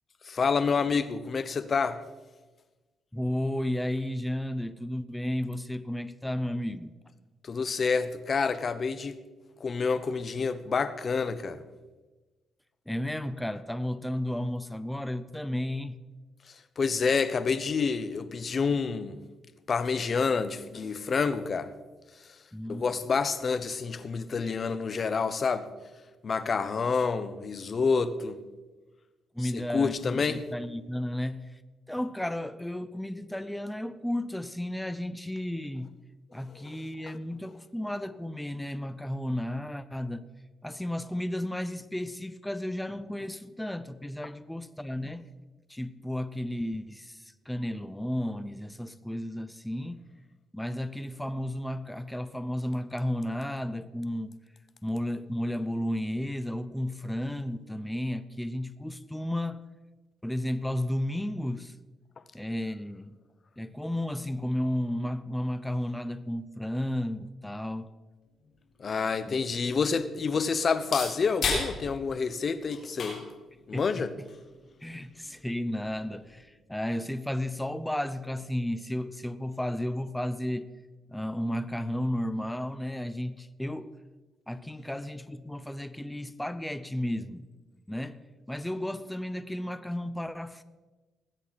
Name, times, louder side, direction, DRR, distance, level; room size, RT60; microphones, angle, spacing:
voice 1, 0.2-2.0 7.4-9.2 9.6-11.6 16.8-19.2 19.7-21.7 22.7-25.7 26.2-28.4 29.4-30.4 36.5-36.8 68.8-73.2 73.7-74.1, left 5 dB, 45° left, 0.8 m, -28 dB
voice 2, 3.1-6.9 12.9-16.0 22.5-22.8 29.3-31.5 31.9-35.9 36.3-40.3 40.6-45.3 45.7-50.0 50.5-54.4 54.8-59.6 60.2-61.7 62.3-63.2 63.6-67.9 69.3-69.4 73.7-74.1 74.8-80.7 81.1-83.9 84.5-87.4 87.9-88.2 88.5-90.6, left 1 dB, 5° left, 0.6 m, -33 dB
sound 1, 68.4-76.4, left 4 dB, 60° left, 3.9 m, -38 dB
20.0 x 8.2 x 4.1 m
cardioid pair, 90°, 0 cm